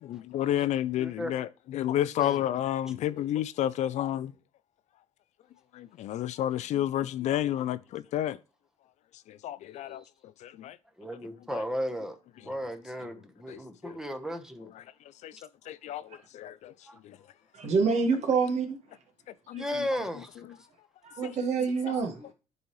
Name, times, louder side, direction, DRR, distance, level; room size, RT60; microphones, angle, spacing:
voice 1, 0.0-4.3 5.7-8.4 9.3-10.0 10.4-10.8 11.5-11.6 13.5-14.0 15.2-15.3 15.7-16.7 17.0-17.2 19.5-19.6 21.9-22.0, left 12 dB, 65° left, 0.4 m, -31 dB
voice 2, 1.0-1.3 2.2-2.4 11.0-14.7 15.3-15.4 16.9-17.0 19.6-20.5, equal, 5° right, 1.0 m, -35 dB
voice 3, 17.5-18.8 19.5-19.6 21.0-22.3, right 5 dB, 60° right, 1.7 m, -27 dB
10.5 x 4.1 x 3.1 m
cardioid pair, 95°, 13 cm